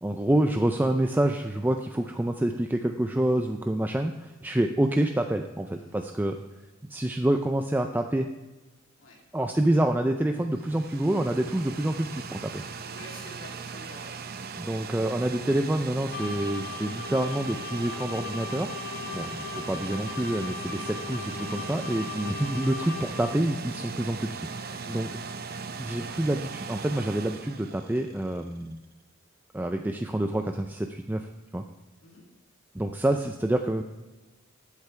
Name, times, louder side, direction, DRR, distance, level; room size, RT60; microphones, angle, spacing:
voice 1, 0.0-6.4 6.9-8.3 9.3-12.6 14.6-18.7 19.1-25.1 25.8-28.8 29.5-31.6 32.7-33.8, right 1 dB, 10° right, 5 dB, 0.4 m, -27 dB
sound 1, 10.3-28.4, right 5 dB, 50° right, 0.6 m, -39 dB
voice 2, 12.8-14.5 18.9-19.2 22.0-22.2 24.8-25.1 32.0-32.2, left 1 dB, 70° left, -3 dB, 2.8 m, -49 dB
sound 2, 16.1-23.6, left 6 dB, 45° left, 2.4 m, -39 dB
15.0 x 8.2 x 3.3 m, 1.1 s
head